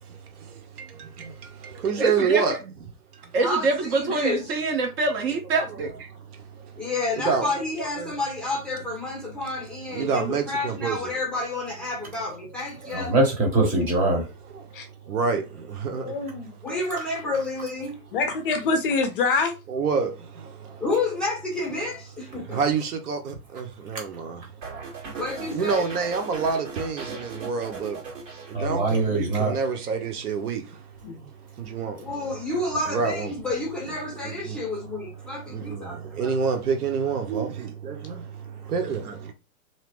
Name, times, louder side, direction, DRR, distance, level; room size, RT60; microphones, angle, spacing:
voice 1, 0.8-1.3 1.6-2.6 7.2-7.5 8.0-8.1 9.9-11.0 14.5-14.6 15.1-16.1 19.7-20.1 22.3-24.4 25.5-28.0 28.5-30.6 31.6-32.0 32.9-33.3 34.2-34.6 35.5-38.2 38.7-39.3, right 5 dB, 85° right, 1.0 m, -27 dB
voice 2, 2.0-2.5 3.3-5.9, right 3 dB, 40° right, 1.0 m, -25 dB
voice 3, 3.4-4.6 6.7-13.1 16.6-18.0 20.8-22.6 25.2-25.8 32.0-36.3, left 2 dB, ahead, 0.7 m, -30 dB
voice 4, 12.9-14.2 24.7-24.8 28.5-29.6, right 2 dB, 20° right, 1.0 m, -23 dB
voice 5, 16.0-16.5 18.1-19.5 31.0-31.2, left 4 dB, 40° left, 0.4 m, -25 dB
sound 1, 24.6-29.1 29.3-29.7, right 4 dB, 60° right, 1.8 m, -38 dB
2.9 x 2.0 x 3.0 m
hypercardioid pair, 140°, 44 cm